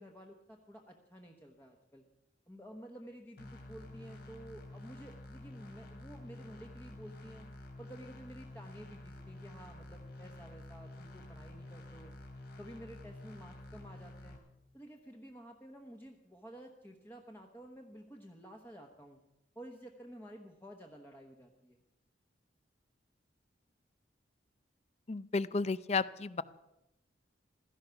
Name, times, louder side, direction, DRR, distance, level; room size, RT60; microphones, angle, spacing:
voice 1, 0.0-2.0 2.5-7.5 7.8-12.1 12.6-14.4 14.7-19.2 19.5-21.8, equal, 10° left, 1 dB, 1.1 m, -52 dB
sound 1, 3.4-14.4, left 1 dB, 55° left, 2.9 m, -50 dB
voice 2, 25.1-26.4, left 4 dB, 35° left, 17 dB, 0.5 m, -33 dB
16.0 x 13.5 x 5.8 m, 0.92 s
head